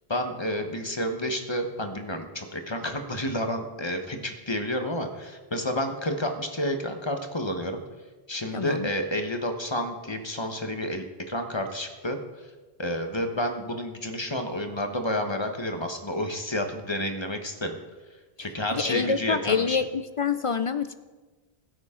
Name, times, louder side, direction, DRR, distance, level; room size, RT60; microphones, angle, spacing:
voice 1, 0.1-7.8 8.3-12.2 12.8-17.8 18.4-19.8, left 1 dB, 25° left, 5 dB, 1.2 m, -30 dB
voice 2, 8.5-8.9 18.8-20.9, left 5 dB, 50° left, 11 dB, 0.4 m, -26 dB
21.5 x 8.9 x 3.8 m, 1.3 s
omnidirectional pair, 1.0 m